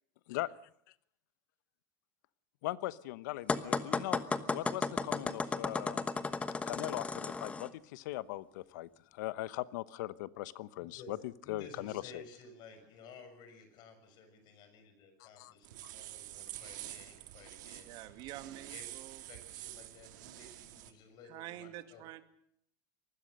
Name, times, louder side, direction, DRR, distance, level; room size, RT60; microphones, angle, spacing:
voice 1, 2.6-6.1 6.7-12.2 15.2-15.5 15.8-15.9, left 17 dB, 80° left, 17 dB, 1.0 m, -40 dB
sound 1, 3.5-7.7, left 4 dB, 15° left, 1.1 m, -34 dB
voice 2, 11.0-18.0 18.7-18.8 19.3-22.1, left 3 dB, 45° left, 8 dB, 6.5 m, -54 dB
sound 2, 15.6-20.9, right 15 dB, 85° right, 2.1 m, -48 dB
voice 3, 17.8-19.2 21.2-22.2, right 14 dB, 50° right, 10 dB, 2.1 m, -47 dB
24.5 x 20.0 x 6.7 m, 0.69 s
supercardioid pair, 145°, 10 cm